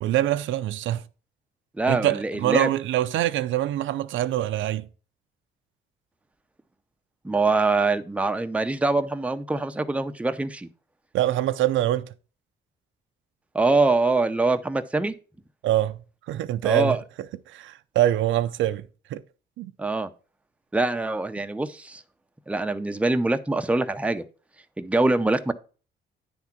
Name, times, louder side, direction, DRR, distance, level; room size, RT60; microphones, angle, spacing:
voice 1, 0.0-1.0 1.9-4.9 11.1-12.1 15.6-16.0 16.3-17.0 17.5-18.8 19.1-19.2 19.6-19.7, right 13 dB, 75° right, 0.5 m, -24 dB
voice 2, 1.8-2.7 7.2-10.7 13.5-15.1 16.6-17.0 19.8-20.1 20.7-22.0 22.5-24.2 24.8-25.5, right 3 dB, 5° right, 0.6 m, -24 dB
9.4 x 3.5 x 5.8 m
cardioid pair, 90°, 20 cm